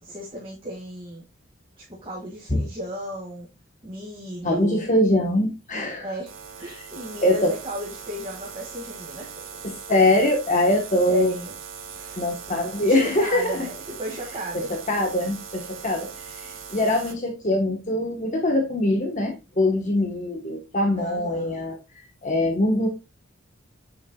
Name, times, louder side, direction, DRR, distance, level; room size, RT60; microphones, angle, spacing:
voice 1, 0.0-1.2 1.8-3.5 3.8-4.9 6.0-9.6 11.1-11.5 11.9-12.2 12.8-14.7 15.8-15.9 21.0-21.6, right 1 dB, 25° right, 2.0 m, -35 dB
voice 2, 4.4-6.1 7.2-7.5 9.6-11.3 12.2-13.7 14.7-16.1 16.3-21.8 22.2-22.9, left 1 dB, 40° left, 1.3 m, -23 dB
sound 1, 6.3-17.1, right 6 dB, 80° right, 1.6 m, -40 dB
8.6 x 6.9 x 2.3 m
head